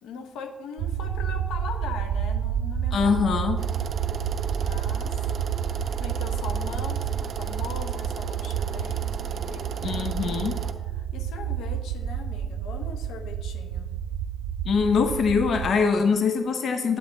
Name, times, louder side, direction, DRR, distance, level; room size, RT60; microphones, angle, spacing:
voice 1, 0.0-3.2 4.6-5.1 5.5-10.4 10.8-13.9, left 5 dB, 85° left, 6 dB, 1.0 m, -40 dB
sound 1, 0.8-15.7, right 8 dB, 90° right, 0.4 m, -30 dB
voice 2, 2.9-3.6 9.8-10.5 14.7-17.0, left 5 dB, 60° left, 6 dB, 0.7 m, -23 dB
sound 2, 3.6-10.7, right 6 dB, 55° right, 0.8 m, -37 dB
9.5 x 8.5 x 3.9 m, 1.2 s
cardioid pair, 90°, 0 cm